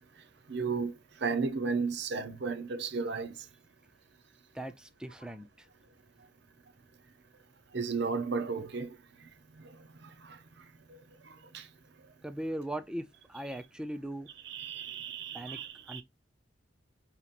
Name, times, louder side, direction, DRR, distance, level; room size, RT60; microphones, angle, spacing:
voice 1, 0.5-0.9 1.2-3.3 7.7-8.9 11.5-11.6 14.4-16.0, right 4 dB, 60° right, 0.7 m, -33 dB
voice 2, 4.6-5.5 12.2-14.3 15.3-15.6 15.9-16.0, right 1 dB, 5° right, 0.4 m, -39 dB
5.2 x 2.9 x 2.5 m
head